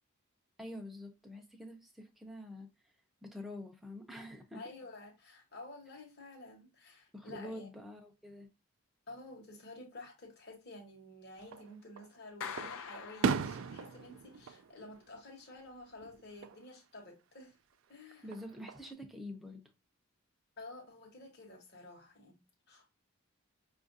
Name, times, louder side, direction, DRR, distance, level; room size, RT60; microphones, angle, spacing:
voice 1, 0.6-2.7 3.2-4.6 7.1-8.5 18.2-19.6, left 1 dB, ahead, 0.6 m, -46 dB
voice 2, 4.5-7.7 9.1-17.6 17.9-18.3 20.6-22.9, left 2 dB, 50° left, 1.0 m, -51 dB
Fireworks, 11.4-12.1 12.6-15.7 16.0-16.6 18.1-18.9, right 6 dB, 65° right, 0.3 m, -37 dB
Clapping, 12.4-14.1, left 7 dB, 75° left, 0.5 m, -45 dB
5.5 x 2.5 x 2.6 m
head